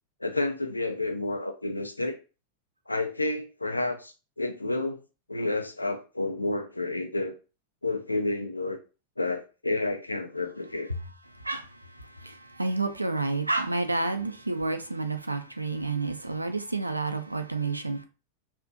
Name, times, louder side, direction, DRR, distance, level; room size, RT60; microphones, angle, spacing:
voice 1, 0.2-2.2 2.9-5.0 5.3-7.3 7.8-8.8 9.2-10.9, left 2 dB, 85° left, 0.3 m, -30 dB
voice 2, 11.9-18.0, right 3 dB, 85° right, 0.3 m, -30 dB
2.4 x 2.1 x 2.5 m
figure-of-eight pair, 90°, 0 cm